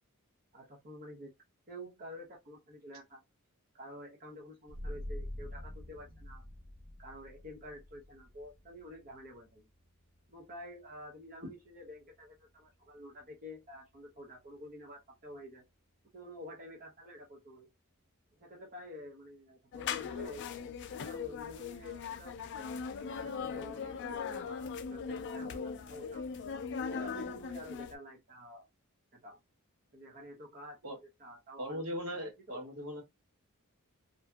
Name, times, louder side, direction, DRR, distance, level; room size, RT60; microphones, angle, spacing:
voice 1, 0.5-1.3 1.7-3.2 3.7-6.4 7.0-9.7 10.3-15.6 16.1-17.7 18.4-20.4 20.9-26.2 26.8-28.7 29.2-29.4 29.9-32.7, equal, 40° right, 0.6 m, -49 dB
sound 1, 4.7-15.9, left 1 dB, 35° left, 0.7 m, -49 dB
sound 2, 19.7-27.9, left 6 dB, 55° left, 0.3 m, -39 dB
voice 2, 31.6-33.0, equal, 75° right, 1.0 m, -39 dB
2.6 x 2.5 x 2.2 m
head